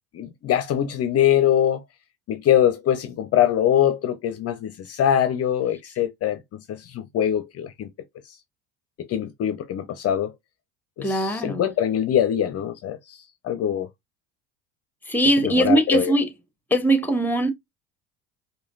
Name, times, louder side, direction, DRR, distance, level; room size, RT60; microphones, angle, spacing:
voice 1, 0.1-1.8 2.3-6.4 6.7-7.9 8.3-8.4 9.0-10.3 11.0-13.2 13.4-13.9 15.4-16.1, left 10 dB, 45° left, 0.6 m, -23 dB
voice 2, 11.0-11.7 15.1-16.3 16.7-17.5, right 1 dB, 5° left, 1.1 m, -21 dB
4.9 x 2.3 x 2.4 m
hypercardioid pair, 70°, 35 cm